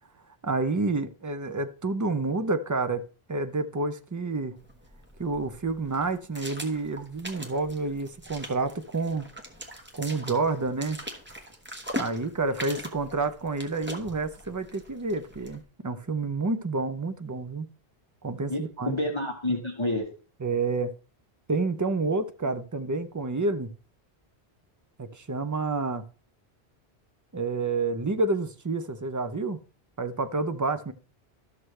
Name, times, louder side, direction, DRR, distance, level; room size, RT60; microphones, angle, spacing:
voice 1, 0.4-3.0 3.3-4.6 5.2-9.2 9.9-11.0 12.0-17.7 18.2-19.0 20.4-20.9 21.5-23.7 25.0-26.0 27.3-29.6 30.0-30.9, right 3 dB, 25° right, 0.4 m, -29 dB
sound 1, 4.6-15.6, equal, 10° right, 1.1 m, -41 dB
voice 2, 12.4-12.8 18.5-20.1, left 1 dB, 30° left, 1.1 m, -30 dB
12.5 x 6.3 x 3.2 m
omnidirectional pair, 1.1 m